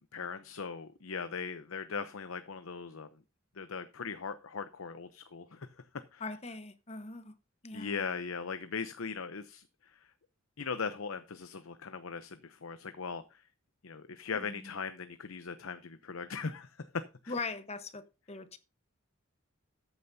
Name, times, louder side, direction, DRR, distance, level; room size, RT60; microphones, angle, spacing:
voice 1, 0.1-3.1 3.6-5.7 6.1-6.2 7.7-10.1 10.6-13.4 13.8-17.3, left 5 dB, 85° left, 0.7 m, -39 dB
voice 2, 6.2-7.3 7.6-8.0 14.3-14.7 17.3-18.6, left 3 dB, 30° left, 1.1 m, -41 dB
13.5 x 9.0 x 2.7 m
head